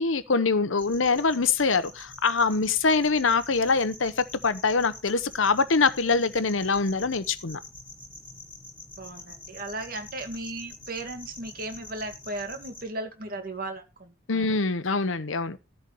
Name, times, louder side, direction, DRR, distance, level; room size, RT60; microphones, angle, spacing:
voice 1, 0.0-7.6 14.3-15.6, left 4 dB, 75° left, 0.9 m, -24 dB
sound 1, 0.8-12.8, left 2 dB, 10° left, 5.9 m, -46 dB
voice 2, 9.0-14.5, right 2 dB, 45° right, 2.0 m, -36 dB
13.0 x 4.6 x 6.9 m
head